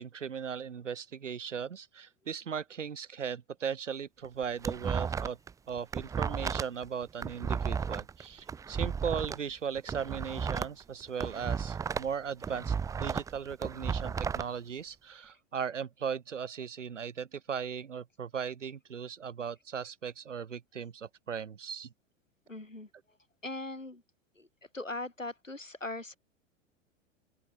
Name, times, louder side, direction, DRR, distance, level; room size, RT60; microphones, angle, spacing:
voice 1, 0.0-5.4 5.7-21.9, right 7 dB, 75° right, 3.6 m, -37 dB
sound 1, 4.2-5.5 5.8-9.4 9.8-12.1 12.4-14.4, right 6 dB, 10° right, 0.5 m, -33 dB
voice 2, 22.5-22.9 23.4-24.0 24.4-24.5 24.7-26.2, left 2 dB, 90° left, 4.0 m, -39 dB
open air
figure-of-eight pair, 90°, 37 cm